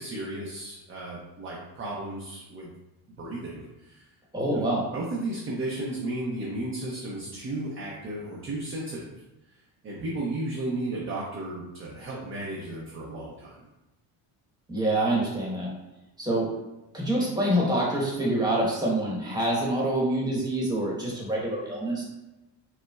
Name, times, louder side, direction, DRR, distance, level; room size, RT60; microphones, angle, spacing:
voice 1, 0.0-2.7 3.2-4.0 4.5-4.7 4.9-9.1 9.8-13.6, right 2 dB, 30° right, -4 dB, 0.6 m, -34 dB
voice 2, 4.3-4.8 14.7-15.7 16.2-16.5 16.9-22.0, right 1 dB, 10° right, -5 dB, 1.1 m, -26 dB
5.2 x 2.1 x 2.3 m, 0.97 s
cardioid pair, 120°, 43 cm